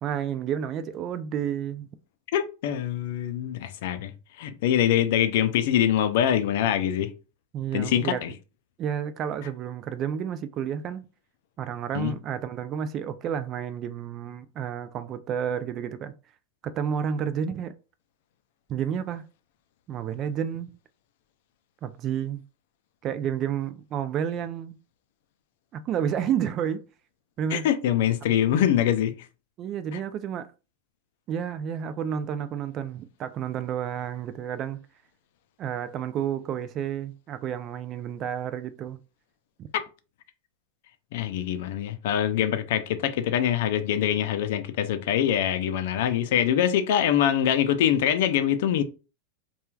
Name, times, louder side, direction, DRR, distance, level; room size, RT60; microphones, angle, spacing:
voice 1, 0.0-1.9 7.5-8.2 8.8-11.0 11.6-16.1 16.6-17.7 18.7-19.2 19.9-20.7 21.8-22.4 23.0-24.8 25.7-26.8 27.4-27.7 28.2-28.3 29.6-30.5 31.3-34.8 35.6-39.0 39.6-39.7, right 8 dB, 40° right, 0.3 m, -30 dB
voice 2, 2.3-4.1 4.4-7.1 7.7-8.3 11.9-12.2 27.5-29.2 39.7-39.8 41.1-48.8, left 10 dB, 65° left, 0.4 m, -24 dB
3.0 x 2.3 x 2.3 m
hypercardioid pair, 105°, 0 cm